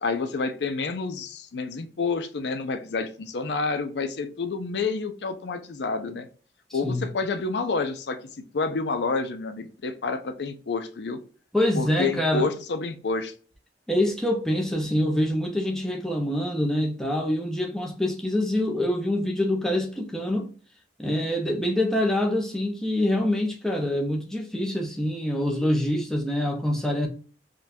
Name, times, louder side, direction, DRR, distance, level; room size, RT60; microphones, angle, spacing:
voice 1, 0.0-6.3 6.7-8.2 8.5-11.2 11.7-13.3, left 4 dB, 75° left, 0.5 m, -29 dB
voice 2, 6.7-7.0 11.5-12.5 13.9-20.5 21.0-27.1, left 1 dB, 5° left, 0.6 m, -25 dB
3.7 x 2.3 x 2.6 m
head